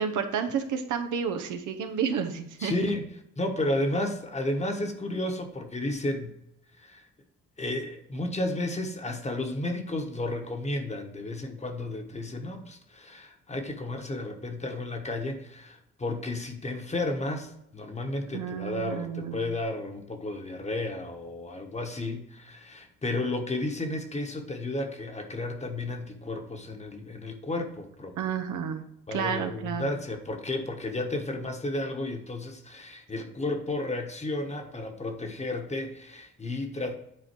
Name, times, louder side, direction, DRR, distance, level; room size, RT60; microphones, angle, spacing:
voice 1, 0.0-2.7 18.3-19.4 28.2-28.8 29.1-29.9, right 7 dB, 80° right, 5 dB, 0.9 m, -30 dB
voice 2, 2.6-3.1 3.4-6.4 6.8-7.0 7.6-28.2 29.1-36.9, left 2 dB, 20° left, 5 dB, 1.2 m, -32 dB
9.8 x 3.8 x 4.6 m, 0.78 s
cardioid pair, 90°, 30 cm